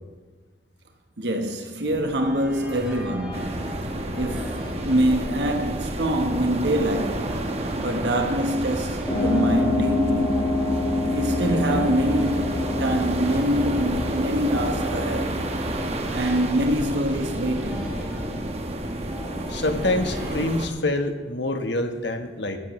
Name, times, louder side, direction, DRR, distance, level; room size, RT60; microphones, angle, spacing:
voice 1, 1.2-3.8 4.2-7.3 7.7-10.4 11.0-15.4 16.1-18.2, right 1 dB, 70° right, 1.1 m, -25 dB
sound 1, 1.8-20.3, equal, 5° right, 3.7 m, -38 dB
sound 2, 3.3-20.7, right 1 dB, 35° right, 1.0 m, -30 dB
sound 3, 9.1-17.2, left 1 dB, 15° left, 5.1 m, -27 dB
voice 2, 19.5-22.6, left 2 dB, 75° left, 1.2 m, -26 dB
20.0 x 13.0 x 3.1 m
head